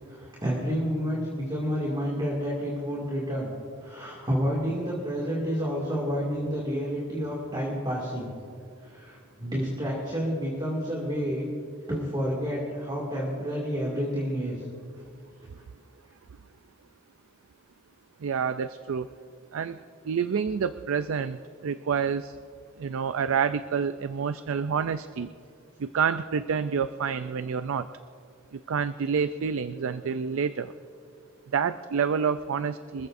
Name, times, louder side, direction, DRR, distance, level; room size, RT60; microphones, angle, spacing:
voice 1, 0.1-3.5 3.8-8.3 8.8-11.5 11.9-14.6, equal, 20° right, -4 dB, 2.3 m, -29 dB
voice 2, 18.2-19.1 19.5-19.8 20.0-22.4 22.8-25.3 25.8-27.9 28.5-30.7 31.5-33.1, right 6 dB, 75° right, 12 dB, 0.4 m, -28 dB
25.5 x 14.5 x 2.6 m, 2.4 s
head